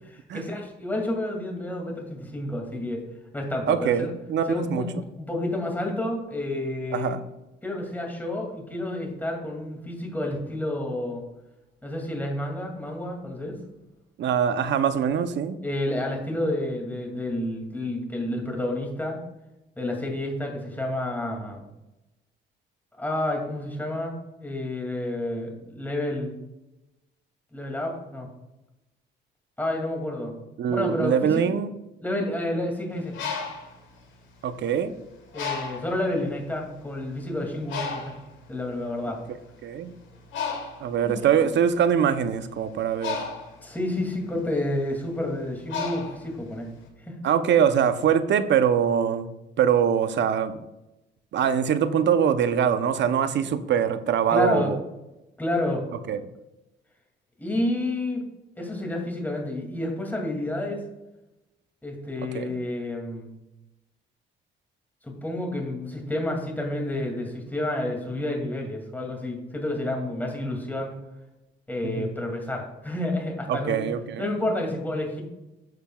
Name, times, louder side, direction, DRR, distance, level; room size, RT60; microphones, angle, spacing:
voice 1, 0.1-3.0 3.3-4.1 4.5-7.2 7.6-11.2 11.8-13.6 15.6-19.2 19.8-21.6 23.0-26.3 27.5-28.3 29.6-30.3 30.7-31.4 32.0-33.1 35.3-38.1 38.5-39.2 41.0-41.5 43.6-46.7 47.0-47.1 54.3-54.7 55.4-55.8 57.4-58.2 58.6-60.8 61.8-63.3 65.0-70.9 71.7-73.8 74.2-75.2, left 1 dB, 10° left, 1 dB, 2.2 m, -30 dB
voice 2, 3.7-4.8 6.9-7.2 14.2-15.6 30.6-31.7 34.4-34.9 39.6-39.9 40.8-43.2 47.2-49.3 49.6-50.6 51.3-54.8 56.1-56.2 62.3-62.5 71.8-72.1 73.5-74.2, right 8 dB, 65° right, 12 dB, 0.7 m, -23 dB
Bird, 32.9-34.8 35.3-36.0 36.7-36.8 37.1-46.8, left 5 dB, 70° left, 2.1 m, -35 dB
10.5 x 6.8 x 2.3 m, 0.98 s
cardioid pair, 90°, 20 cm